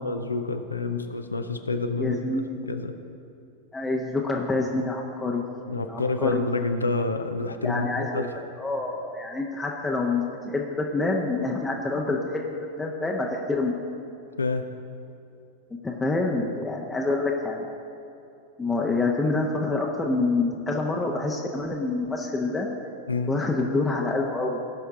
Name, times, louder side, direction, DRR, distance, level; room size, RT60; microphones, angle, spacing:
voice 1, 0.0-2.4 2.7-2.9 5.7-8.3 14.4-14.7 23.1-23.4, left 3 dB, 80° left, 8 dB, 0.6 m, -28 dB
voice 2, 2.0-2.7 3.7-5.4 5.9-6.5 7.6-8.2 8.6-13.8 15.8-17.7 18.6-22.7 23.3-24.6, left 3 dB, 10° left, -1 dB, 0.8 m, -27 dB
17.0 x 5.7 x 3.7 m, 2.7 s
figure-of-eight pair, 90°, 0 cm